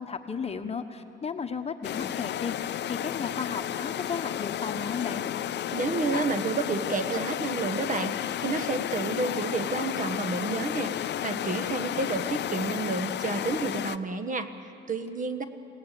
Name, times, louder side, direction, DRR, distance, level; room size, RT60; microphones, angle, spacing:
voice 1, 0.0-5.2, left 5 dB, 30° left, 7 dB, 1.2 m, -34 dB
sound 1, 1.8-14.0, left 11 dB, 60° left, 0.6 m, -32 dB
voice 2, 5.7-15.4, right 3 dB, 40° right, 9 dB, 1.3 m, -30 dB
22.0 x 17.5 x 8.3 m, 2.4 s
cardioid pair, 90°, 20 cm